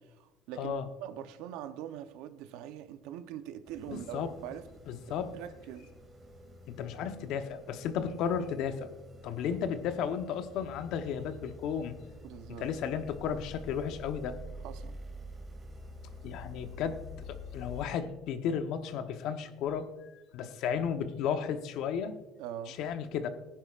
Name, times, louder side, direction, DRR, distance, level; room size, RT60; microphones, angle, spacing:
voice 1, 0.1-4.7 5.1-5.9 12.2-12.9 14.6-15.0 22.4-22.8, right 10 dB, 80° right, 0.8 m, -43 dB
sound 1, 3.7-17.9, left 1 dB, 20° right, 2.4 m, -48 dB
voice 2, 3.9-4.3 4.9-5.3 6.7-8.9 9.2-11.9 12.5-14.4 16.2-17.0 17.3-22.2 22.7-23.3, left 7 dB, 65° left, 1.0 m, -34 dB
18.0 x 10.0 x 2.5 m
cardioid pair, 130°, 0 cm